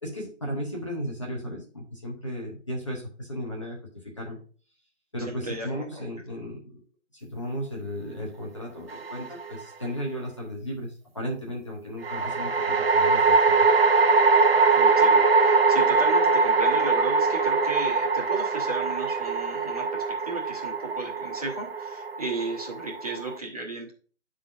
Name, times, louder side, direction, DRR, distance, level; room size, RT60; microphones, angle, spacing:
voice 1, 0.0-3.8 4.2-4.4 5.1-6.8 7.1-13.4, equal, 25° left, -2 dB, 0.9 m, -35 dB
voice 2, 5.3-6.0 14.7-23.9, right 3 dB, 30° right, -2 dB, 1.1 m, -35 dB
sound 1, 8.9-9.6 12.0-23.4, right 4 dB, 50° right, 0.4 m, -22 dB
11.0 x 3.8 x 2.5 m, 0.40 s
figure-of-eight pair, 165°, 38 cm